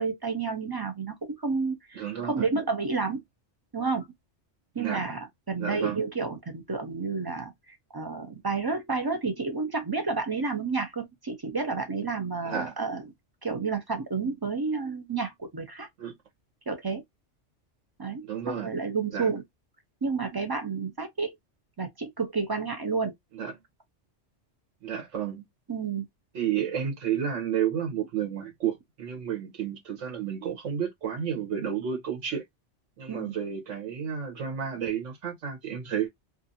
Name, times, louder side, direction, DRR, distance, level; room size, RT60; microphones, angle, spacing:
voice 1, 0.0-3.2 3.7-4.1 4.8-13.0 13.4-15.9 16.7-17.0 18.0-19.4 20.0-21.3 21.8-23.1 25.7-26.1 33.1-33.3, right 4 dB, 40° right, 0.3 m, -30 dB
voice 2, 1.9-2.5 4.8-5.1 5.6-6.1 12.4-12.7 16.0-16.1 18.2-18.7 19.1-19.3 23.3-23.5 24.8-25.4 26.3-32.4 33.0-36.1, right 8 dB, 85° right, 1.2 m, -31 dB
2.5 x 2.4 x 2.6 m
omnidirectional pair, 1.2 m